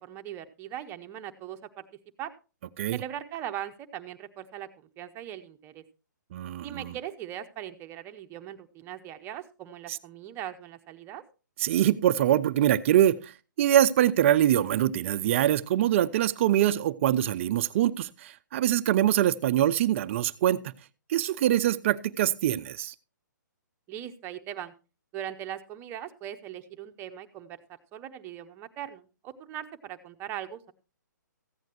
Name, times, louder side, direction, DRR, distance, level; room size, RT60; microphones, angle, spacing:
voice 1, 0.0-1.8 2.2-2.3 2.9-5.8 6.6-11.2 23.9-24.7 25.1-27.6 27.9-30.7, right 11 dB, 20° right, 8 dB, 0.9 m, -40 dB
voice 2, 6.3-6.9 9.9-10.0 11.6-20.7 21.1-22.9, right 12 dB, 40° right, 14 dB, 0.5 m, -24 dB
15.0 x 9.1 x 3.0 m, 0.32 s
hypercardioid pair, 135°, 10 cm